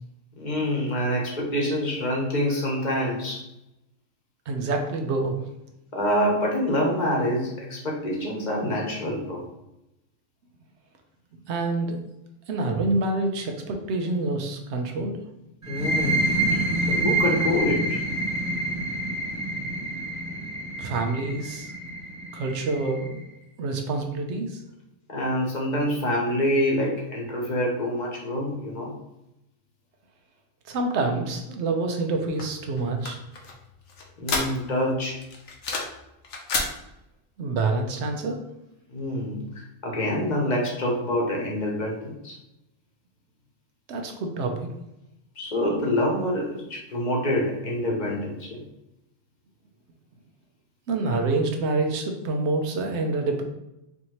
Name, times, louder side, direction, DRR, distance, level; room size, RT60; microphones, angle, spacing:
voice 1, 0.4-3.4 5.9-9.4 15.7-16.6 16.9-18.0 25.1-28.9 34.2-35.2 38.9-42.4 45.4-48.6, left 1 dB, 40° left, -1 dB, 0.9 m, -26 dB
voice 2, 4.5-5.3 11.5-12.0 12.5-15.2 20.8-21.7 22.3-23.2 23.6-24.6 30.7-33.2 37.4-38.4 43.9-44.8 50.9-53.4, right 3 dB, 65° right, 4 dB, 0.9 m, -27 dB
sound 1, 15.6-23.1, right 2 dB, 15° right, 0.8 m, -27 dB
sound 2, 32.4-34.9 35.2-36.0 36.2-36.7, left 3 dB, 90° left, 1.2 m, -30 dB
4.7 x 2.6 x 3.0 m, 0.88 s
omnidirectional pair, 1.3 m